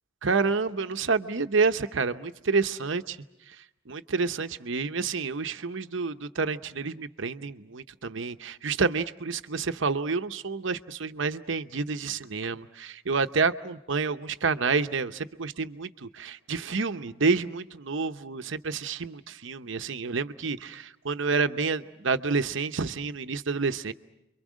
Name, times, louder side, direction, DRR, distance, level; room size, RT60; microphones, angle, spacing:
voice 1, 0.2-3.0 3.9-23.9, right 4 dB, 60° right, 9 dB, 0.8 m, -29 dB
30.0 x 23.5 x 6.3 m, 0.90 s
head